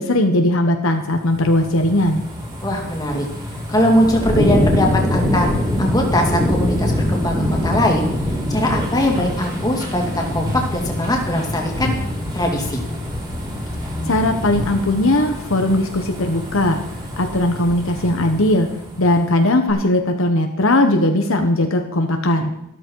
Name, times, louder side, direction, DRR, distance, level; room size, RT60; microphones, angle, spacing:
voice 1, 0.0-2.2 14.1-16.8 17.2-18.7 19.0-22.5, left 1 dB, 60° left, 5 dB, 1.2 m, -18 dB
sound 1, 1.1-19.3 19.7-19.8, left 1 dB, 20° right, 3.9 m, -24 dB
voice 2, 2.6-3.3 3.7-5.5 5.8-11.9 12.3-12.8, left 1 dB, 15° left, 0 dB, 2.6 m, -21 dB
13.5 x 13.0 x 4.7 m, 0.83 s
head